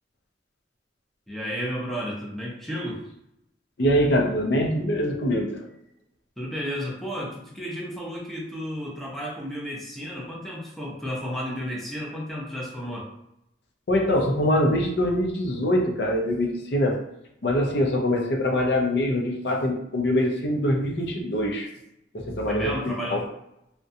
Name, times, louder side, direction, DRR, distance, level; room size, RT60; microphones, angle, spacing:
voice 1, 1.3-3.0 6.4-13.1 22.5-23.2, equal, ahead, -4 dB, 0.5 m, -32 dB
voice 2, 3.8-5.6 13.9-17.0 17.4-21.7 22.1-23.2, left 1 dB, 65° left, 1 dB, 0.5 m, -24 dB
2.5 x 2.1 x 2.6 m, 0.81 s
head